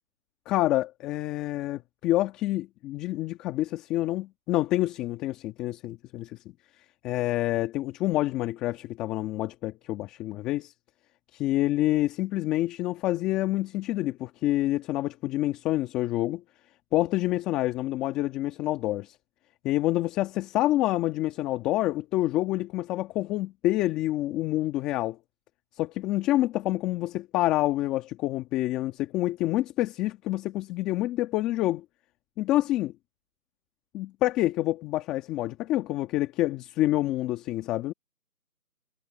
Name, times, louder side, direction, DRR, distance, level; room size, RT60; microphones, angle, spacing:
voice 1, 0.4-6.4 7.0-10.7 11.3-16.4 16.9-19.2 19.6-25.2 25.7-31.8 32.4-32.9 33.9-37.9, left 15 dB, ahead, 1.4 m, -27 dB
figure-of-eight pair, 160°, 47 cm